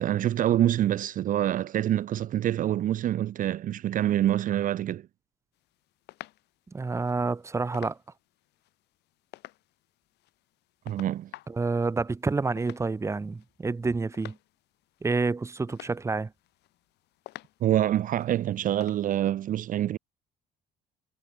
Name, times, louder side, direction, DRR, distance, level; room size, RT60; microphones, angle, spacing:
voice 1, 0.0-5.1 10.9-11.3 17.6-20.0, right 12 dB, 50° right, 0.6 m, -26 dB
sound 1, 5.5-19.1, left 17 dB, 85° left, 8.0 m, -52 dB
voice 2, 6.7-8.0 11.5-14.4 15.0-16.3, right 3 dB, 15° right, 0.9 m, -28 dB
cardioid pair, 110°, 17 cm